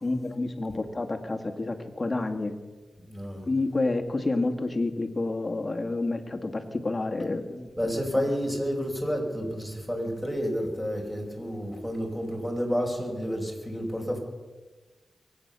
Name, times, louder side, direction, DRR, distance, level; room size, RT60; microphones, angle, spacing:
voice 1, 0.0-2.5 3.5-7.7 8.1-8.2, left 2 dB, 35° left, 5 dB, 2.0 m, -29 dB
voice 2, 3.0-3.5 7.8-14.2, equal, 5° right, 1 dB, 5.0 m, -30 dB
23.0 x 9.1 x 6.9 m, 1.3 s
cardioid pair, 65°, 0 cm